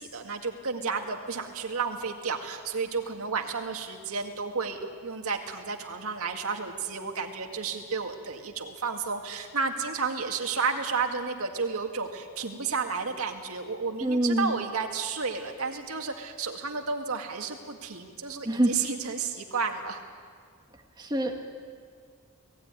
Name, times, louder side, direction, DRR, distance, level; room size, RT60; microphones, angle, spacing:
voice 1, 0.0-20.0, right 5 dB, 85° right, 3 dB, 2.0 m, -32 dB
voice 2, 14.0-14.6 18.4-18.7 21.0-21.4, right 1 dB, 20° right, 3 dB, 1.5 m, -25 dB
20.0 x 15.5 x 9.7 m, 2.1 s
head